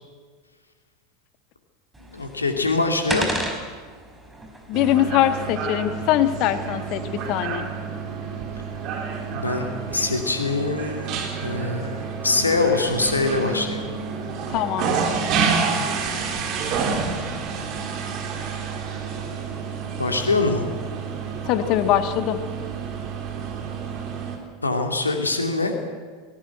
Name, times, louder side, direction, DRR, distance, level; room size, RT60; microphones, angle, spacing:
sound 1, 1.9-7.4, right 1 dB, 10° right, 4.9 m, -35 dB
voice 1, 2.1-3.3 9.3-13.9 20.0-20.7 24.6-25.7, left 3 dB, 85° left, 4 dB, 2.4 m, -24 dB
voice 2, 4.7-7.0 7.3-7.7 14.5-15.2 21.5-22.4, left 12 dB, 50° left, 10 dB, 1.5 m, -22 dB
sound 2, 4.7-24.4, right 5 dB, 45° right, 3.7 m, -29 dB
18.5 x 18.5 x 9.3 m, 1.6 s
figure-of-eight pair, 80°, 0 cm